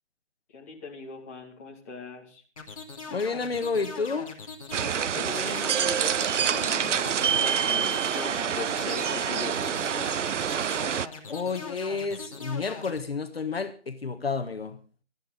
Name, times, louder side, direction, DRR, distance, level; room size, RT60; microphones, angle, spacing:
voice 1, 0.5-2.4 5.1-9.9, left 5 dB, 15° left, 2.4 m, -40 dB
sound 1, 2.6-13.0, left 4 dB, 30° left, 2.5 m, -41 dB
voice 2, 3.1-4.3 11.3-14.8, left 4 dB, 55° left, 1.5 m, -30 dB
sound 2, 4.7-11.1, right 8 dB, 85° right, 0.6 m, -27 dB
20.0 x 12.5 x 3.9 m
hypercardioid pair, 180°, 35 cm